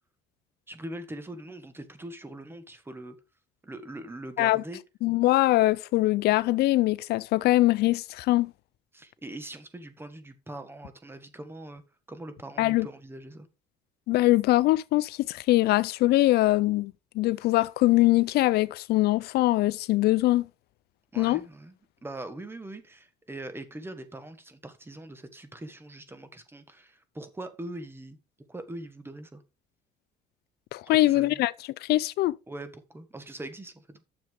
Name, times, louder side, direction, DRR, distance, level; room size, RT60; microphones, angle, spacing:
voice 1, 0.7-3.1 3.6-4.8 8.9-11.8 12.1-13.5 21.1-28.2 28.5-29.4 30.9-31.4 32.5-34.0, right 1 dB, 15° right, 1.5 m, -42 dB
voice 2, 5.0-8.5 12.6-12.9 14.1-20.5 21.2-21.4 30.7-31.5 31.8-32.3, left 17 dB, 75° left, 0.4 m, -23 dB
9.5 x 7.0 x 3.7 m
cardioid pair, 110°, 17 cm